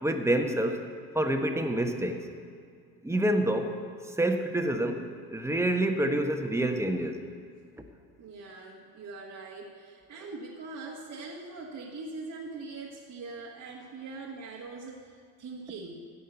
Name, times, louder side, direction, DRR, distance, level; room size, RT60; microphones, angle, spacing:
voice 1, 0.0-0.8 1.1-2.2 3.0-3.7 4.2-5.0 5.3-7.2, right 1 dB, 5° right, 5 dB, 1.3 m, -27 dB
voice 2, 8.2-16.0, right 3 dB, 40° right, -2 dB, 1.6 m, -42 dB
15.5 x 5.4 x 8.0 m, 2.2 s
hypercardioid pair, 60°, 47 cm